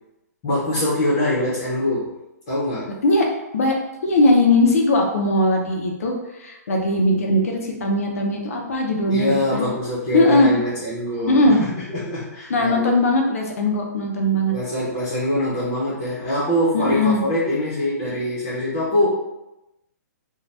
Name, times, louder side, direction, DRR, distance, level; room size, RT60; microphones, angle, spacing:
voice 1, 0.4-2.1 2.5-3.0 9.0-12.9 14.5-19.1, left 1 dB, 15° left, -11 dB, 0.7 m, -23 dB
voice 2, 4.0-9.6 10.1-10.5 11.3-11.6 12.5-14.5 16.7-17.2, left 1 dB, 55° left, 1 dB, 0.6 m, -19 dB
2.7 x 2.1 x 3.2 m, 0.94 s
hypercardioid pair, 180°, 9 cm